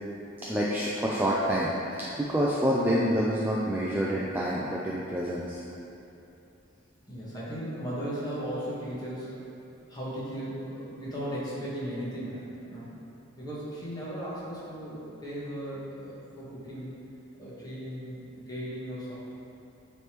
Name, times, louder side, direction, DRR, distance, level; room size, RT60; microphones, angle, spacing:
voice 1, 0.4-5.6, equal, 10° right, -6 dB, 0.3 m, -27 dB
voice 2, 7.1-9.3 9.9-12.9 13.4-17.0 17.4-19.2, equal, 20° left, -9 dB, 1.4 m, -36 dB
9.3 x 3.3 x 3.0 m, 2.8 s
head